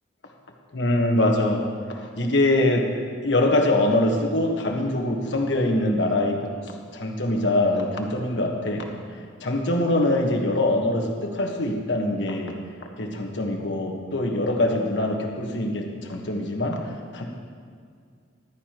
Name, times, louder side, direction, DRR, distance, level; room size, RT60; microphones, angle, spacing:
voice 1, 0.7-1.6 1.9-2.9 3.2-6.5 6.9-8.9 9.4-12.6 13.0-16.8 17.1-17.2, left 1 dB, 75° left, 2 dB, 1.4 m, -23 dB
14.5 x 12.5 x 3.0 m, 2.1 s
head